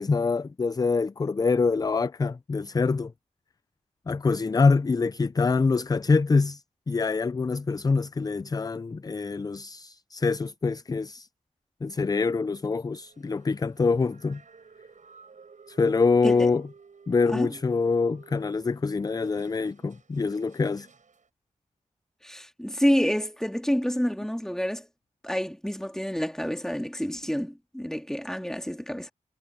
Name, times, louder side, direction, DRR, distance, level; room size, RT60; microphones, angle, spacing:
voice 1, 0.0-3.1 4.1-11.3 11.8-14.4 15.7-16.6 17.1-20.9, left 4 dB, 30° left, 0.4 m, -25 dB
sound 1, 13.0-21.3, right 5 dB, 65° right, 6.1 m, -54 dB
voice 2, 22.2-24.9 25.2-29.1, equal, 5° left, 2.2 m, -28 dB
wide cardioid pair, 90°, 14 cm